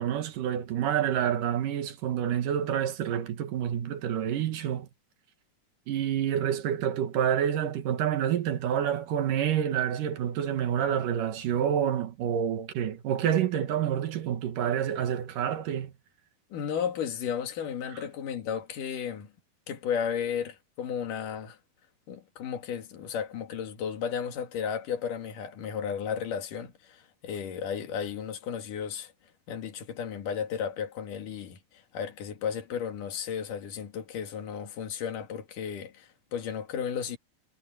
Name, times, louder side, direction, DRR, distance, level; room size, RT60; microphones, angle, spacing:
voice 1, 0.0-4.9 5.9-15.9, right 9 dB, 80° right, 3.1 m, -28 dB
voice 2, 16.5-19.3 19.7-21.6 22.1-29.1 29.5-37.2, left 7 dB, 75° left, 3.8 m, -34 dB
omnidirectional pair, 3.8 m